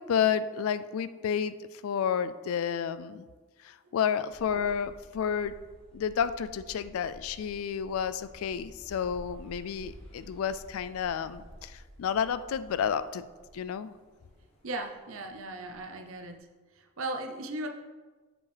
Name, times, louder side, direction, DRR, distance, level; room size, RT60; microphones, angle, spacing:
voice 1, 0.0-1.6 1.8-3.3 3.6-5.5 5.9-13.2 13.5-13.9, left 7 dB, 70° left, 14 dB, 0.3 m, -30 dB
sound 1, 4.3-16.4, equal, 25° left, 1.0 m, -52 dB
voice 2, 14.6-16.4 16.8-17.7, right 2 dB, 65° right, 4 dB, 0.7 m, -37 dB
7.0 x 5.3 x 3.3 m, 1.3 s
head